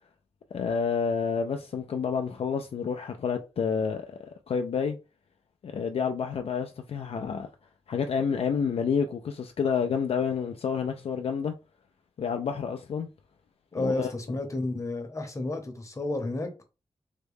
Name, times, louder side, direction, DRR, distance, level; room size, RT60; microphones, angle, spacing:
voice 1, 0.5-5.0 5.6-7.5 7.9-11.5 12.2-13.1 13.8-14.1, left 6 dB, 65° left, 0.4 m, -29 dB
voice 2, 13.7-16.6, left 2 dB, 30° left, 0.8 m, -31 dB
3.5 x 2.1 x 3.4 m
wide cardioid pair, 110°, 11 cm